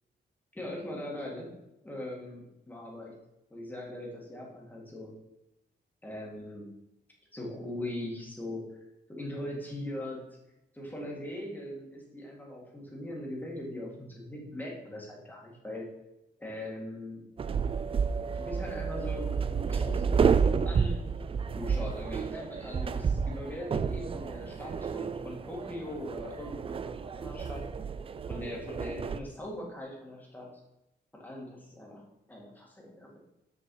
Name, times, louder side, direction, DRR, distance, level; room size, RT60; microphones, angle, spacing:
voice 1, 0.5-1.5 1.8-3.1 3.5-5.1 6.0-6.7 7.3-8.6 9.1-10.2 10.7-15.9 16.4-17.2 18.3-21.0 21.6-27.6 28.3-30.5 31.1-32.0 32.3-33.2, left 1 dB, 10° left, -3 dB, 2.2 m, -40 dB
sound 1, 17.4-29.2, right 6 dB, 30° right, 0.3 m, -30 dB
7.5 x 6.8 x 4.7 m, 0.91 s
wide cardioid pair, 160°, 18 cm